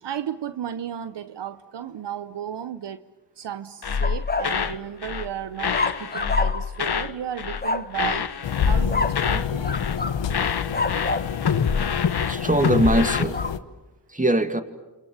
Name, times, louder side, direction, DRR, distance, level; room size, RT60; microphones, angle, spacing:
voice 1, 0.0-3.0 3.4-8.3 8.6-9.7, right 9 dB, 70° right, 0.9 m, -34 dB
sound 1, 3.8-4.8 5.0-5.3 5.6-7.1 7.4-7.7 7.9-9.5 9.7-10.0 10.3-13.2, left 6 dB, 60° left, 1.4 m, -26 dB
sound 2, 4.0-4.6 5.7-6.8 7.6-7.9 8.9-9.2 9.6-10.2 10.7-11.3 13.0-13.5, left 3 dB, 20° left, 1.2 m, -27 dB
sound 3, 8.4-13.6, left 8 dB, 80° left, 1.2 m, -28 dB
voice 2, 12.3-13.4 14.1-14.6, right 1 dB, 20° right, 2.5 m, -21 dB
28.5 x 26.5 x 7.3 m
supercardioid pair, 40°, 43 cm